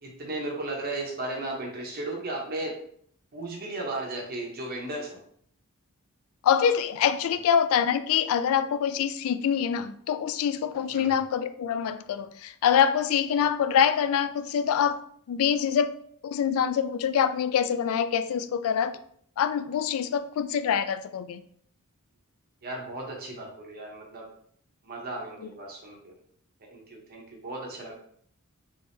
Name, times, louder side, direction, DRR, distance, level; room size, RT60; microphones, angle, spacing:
voice 1, 0.0-2.7 3.3-5.2 10.9-11.1 22.6-24.3 24.8-26.1 26.6-27.9, right 2 dB, 45° right, 0.8 m, -35 dB
voice 2, 6.4-15.0 15.3-15.9 16.2-18.9 19.4-21.4, left 8 dB, 70° left, 0.3 m, -25 dB
3.4 x 3.3 x 2.6 m
head